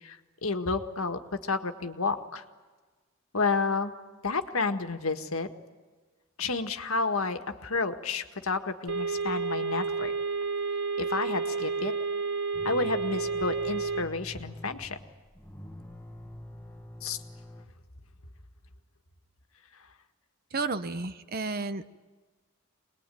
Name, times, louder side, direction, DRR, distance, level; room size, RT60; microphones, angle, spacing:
voice 1, 0.0-2.4 3.3-3.9 4.2-5.5 6.4-10.1 11.0-11.9 12.6-15.0 17.0-17.2, left 4 dB, 90° left, 7 dB, 1.7 m, -30 dB
sound 1, 8.9-14.0, right 4 dB, 70° right, 1.8 m, -30 dB
sound 2, 12.5-17.6, left 1 dB, 10° left, 1.5 m, -46 dB
voice 2, 20.5-21.9, right 3 dB, 45° right, 11 dB, 0.9 m, -32 dB
25.0 x 20.5 x 9.3 m, 1.3 s
head